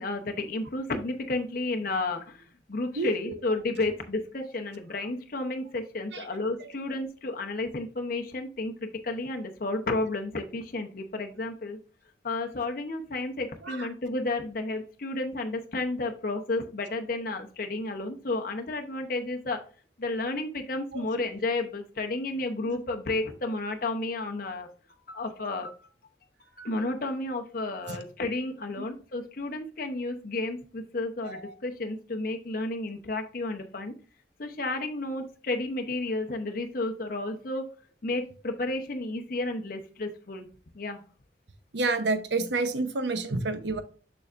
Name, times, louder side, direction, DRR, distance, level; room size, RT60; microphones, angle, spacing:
voice 1, 0.0-11.8 12.2-19.6 20.0-25.7 26.4-33.9 34.4-37.6 38.0-40.5 40.7-41.0, left 2 dB, 55° left, 0.8 m, -32 dB
voice 2, 3.0-3.4 6.1-6.2 6.6-6.7 13.6-13.9 20.9-21.0 22.6-22.8 27.9-28.0 28.8-28.9 31.2-31.5 41.7-43.8, right 3 dB, 85° right, 0.9 m, -30 dB
6.9 x 6.3 x 2.5 m
head